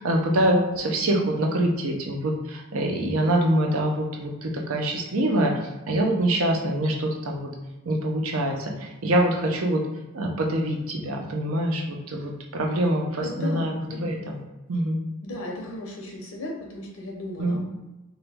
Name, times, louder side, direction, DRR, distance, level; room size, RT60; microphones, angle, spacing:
voice 1, 0.0-5.5 5.9-7.5 7.9-8.7 9.0-9.8 10.1-14.4 14.7-15.0 17.4-17.6, right 1 dB, 80° right, 1 dB, 0.6 m, -25 dB
voice 2, 13.2-14.0 15.2-17.6, left 1 dB, 80° left, 0 dB, 0.7 m, -35 dB
3.0 x 2.3 x 3.4 m, 1.1 s
head